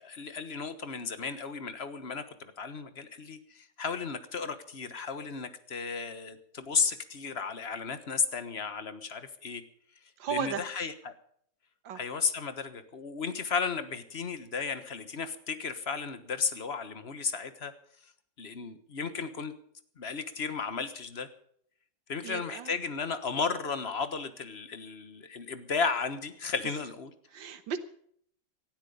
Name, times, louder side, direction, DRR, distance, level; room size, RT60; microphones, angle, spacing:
voice 1, 0.0-9.6 10.3-11.1 11.9-17.7 18.4-19.5 20.0-21.3 22.1-27.1, left 5 dB, 35° left, 11 dB, 1.4 m, -34 dB
voice 2, 10.2-10.6 11.8-12.0 22.2-22.7 27.3-27.8, right 7 dB, 85° right, 10 dB, 1.9 m, -35 dB
18.0 x 13.0 x 5.4 m, 0.63 s
omnidirectional pair, 2.0 m